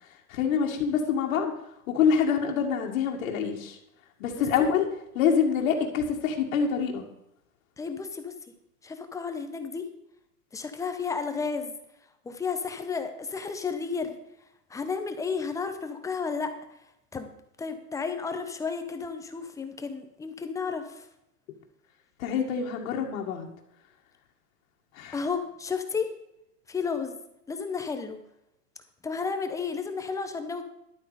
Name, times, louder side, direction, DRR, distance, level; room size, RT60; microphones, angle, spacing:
voice 1, 0.3-1.5 1.9-3.8 4.2-7.0 22.2-23.5 25.0-25.2, left 6 dB, 55° left, 1 dB, 2.1 m, -26 dB
voice 2, 4.3-4.7 7.8-8.3 8.8-9.9 10.5-11.7 12.2-14.2 14.7-16.5 17.1-17.3 17.6-21.1 25.1-26.1 26.7-27.2 27.5-28.2 29.0-30.6, left 5 dB, 5° left, 7 dB, 0.7 m, -32 dB
11.5 x 8.2 x 5.0 m, 0.83 s
hypercardioid pair, 135°, 48 cm